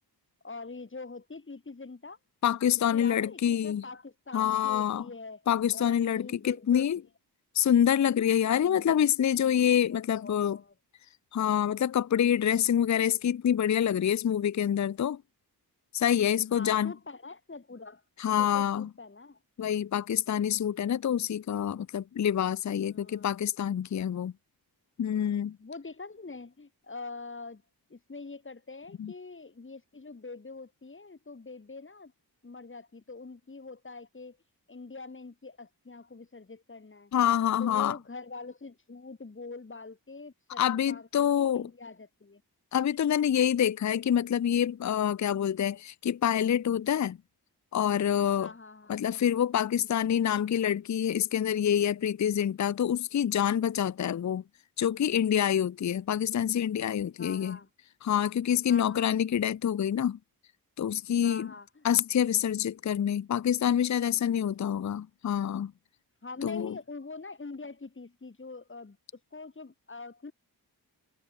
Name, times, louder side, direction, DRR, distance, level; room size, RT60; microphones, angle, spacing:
voice 1, 0.4-2.2 2.9-6.9 8.5-8.9 9.9-10.7 16.5-18.0 18.4-19.4 22.9-23.3 25.6-27.6 27.9-32.1 32.4-34.4 34.7-37.1 37.6-42.4 48.4-49.0 57.2-57.7 58.7-59.1 61.2-61.9 64.0-64.8 66.2-70.3, left 3 dB, 30° left, 5.4 m, -44 dB
voice 2, 2.4-3.8 4.3-5.1 5.5-7.0 7.5-10.6 11.3-15.2 15.9-16.9 18.2-18.9 19.6-24.3 25.0-25.6 29.0-29.1 37.1-38.0 40.6-41.6 42.7-47.2 47.7-48.5 48.9-54.4 54.8-57.6 58.0-60.2 60.8-61.5 61.8-65.7 66.4-66.7, left 9 dB, 45° left, 0.6 m, -26 dB
wide cardioid pair, 125°, 39 cm